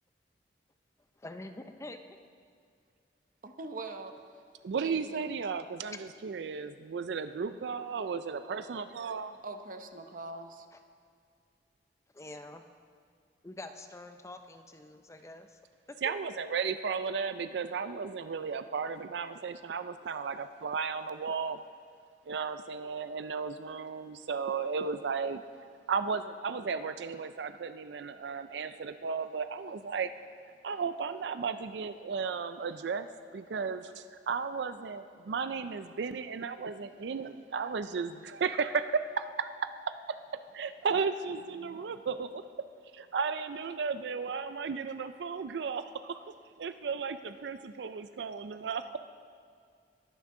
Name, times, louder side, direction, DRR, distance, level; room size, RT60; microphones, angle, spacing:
voice 1, 1.2-2.0 10.7-10.8 12.1-12.6 13.4-15.6, left 2 dB, 15° left, 7 dB, 0.5 m, -46 dB
voice 2, 3.4-4.1 4.8-5.2 9.4-10.7, right 3 dB, 50° right, 7 dB, 0.8 m, -42 dB
voice 3, 4.6-9.3 16.0-21.6 22.3-25.4 25.9-30.1 30.6-39.7 40.5-42.7 42.9-46.2 46.6-49.0, right 5 dB, 65° right, 11 dB, 0.4 m, -34 dB
21.0 x 9.6 x 3.7 m, 2.3 s
head